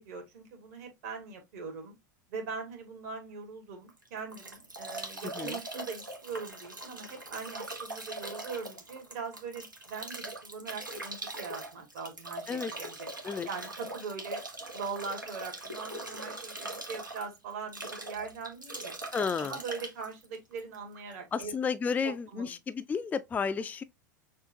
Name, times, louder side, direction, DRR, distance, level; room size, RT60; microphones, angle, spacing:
voice 1, 0.0-1.9 2.3-13.1 13.4-14.4 14.7-18.9 19.4-21.5 22.0-22.5, right 5 dB, 55° right, 1.7 m, -41 dB
Bathtub (filling or washing) / Drip / Trickle dribble, 3.9-21.1, right 2 dB, 90° right, 1.1 m, -41 dB
voice 2, 5.2-5.6 12.5-12.7 13.2-13.5 19.1-19.6 21.3-23.8, left 6 dB, 15° left, 0.4 m, -32 dB
6.4 x 2.4 x 2.7 m
figure-of-eight pair, 90°, 10 cm